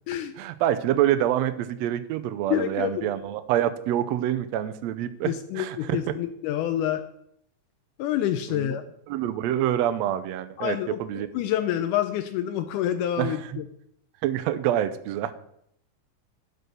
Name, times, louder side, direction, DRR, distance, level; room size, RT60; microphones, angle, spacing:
voice 1, 0.4-6.0 8.5-8.8 9.1-11.3 13.2-13.5 14.2-15.3, right 11 dB, 85° right, 10 dB, 1.5 m, -26 dB
voice 2, 2.5-3.1 5.3-7.1 8.0-8.8 10.6-13.6, left 11 dB, 80° left, 8 dB, 2.1 m, -27 dB
12.0 x 4.5 x 6.4 m, 0.73 s
omnidirectional pair, 3.7 m